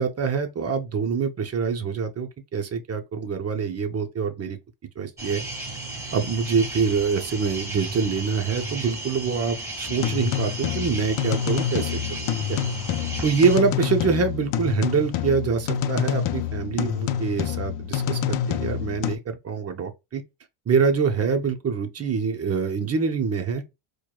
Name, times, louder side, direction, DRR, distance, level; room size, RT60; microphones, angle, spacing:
voice 1, 0.0-4.6 5.0-5.4 6.1-12.2 12.5-12.6 13.2-20.2 20.7-23.6, right 5 dB, 30° right, 0.7 m, -25 dB
sound 1, 5.2-13.6, right 2 dB, 5° right, 1.7 m, -34 dB
sound 2, 9.9-19.2, left 9 dB, 65° left, 0.6 m, -27 dB
4.5 x 2.2 x 2.3 m
cardioid pair, 95°, 47 cm